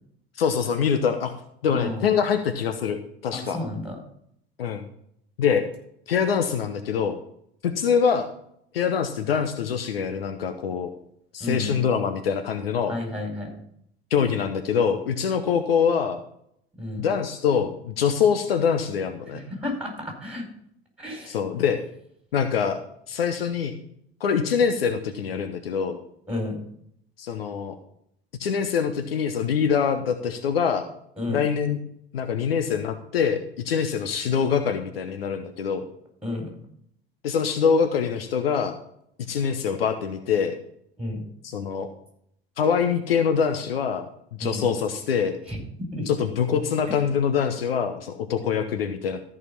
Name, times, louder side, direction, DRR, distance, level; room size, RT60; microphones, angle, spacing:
voice 1, 0.4-1.3 1.6-3.6 4.6-4.8 5.4-5.6 6.1-7.2 7.6-8.3 8.7-10.9 11.3-12.9 14.1-16.2 17.0-19.4 21.3-21.8 22.3-22.8 23.1-23.7 24.2-26.0 27.2-27.7 28.4-30.9 31.3-31.8 32.1-35.8 37.2-38.8 39.3-40.5 41.4-41.9 42.6-44.0 44.4-45.4 46.1-49.2, left 7 dB, 75° left, 8 dB, 1.0 m, -24 dB
voice 2, 1.7-2.1 3.3-4.0 11.4-11.8 12.9-13.5 16.8-17.1 19.3-20.4 21.0-21.4 26.3-26.6 31.2-31.4 36.2-36.6 41.0-41.3 44.4-44.7 45.5-45.6 45.9-46.1, left 1 dB, 5° right, 1 dB, 5.0 m, -31 dB
14.0 x 5.4 x 5.5 m, 0.70 s
figure-of-eight pair, 70°, 30 cm